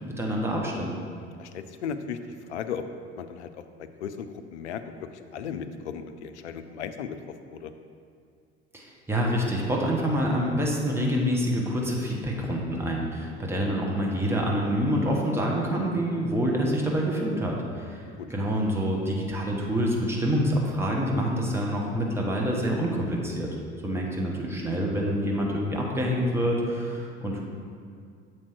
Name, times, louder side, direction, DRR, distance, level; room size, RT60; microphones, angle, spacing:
voice 1, 0.2-0.9 8.7-18.0 18.3-23.5 23.8-27.4, equal, 5° right, -2 dB, 1.1 m, -27 dB
voice 2, 1.4-2.2 2.5-2.8 3.2-4.8 5.1-7.2 7.5-7.7 18.2-18.3 27.4-27.5, left 7 dB, 75° left, 9 dB, 0.5 m, -36 dB
7.2 x 4.6 x 4.6 m, 2.3 s
figure-of-eight pair, 60°, 35 cm